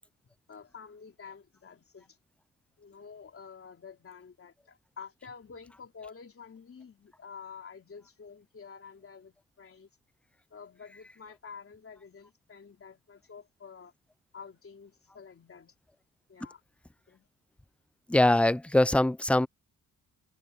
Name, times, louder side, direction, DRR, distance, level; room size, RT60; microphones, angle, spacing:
voice 1, 0.2-2.2 2.8-9.9 10.5-13.9 14.3-15.7 16.3-16.6 17.1-17.3, left 6 dB, 40° left, 3.8 m, -49 dB
voice 2, 18.1-19.5, left 1 dB, 5° left, 0.5 m, -22 dB
wide cardioid pair, 140°, 34 cm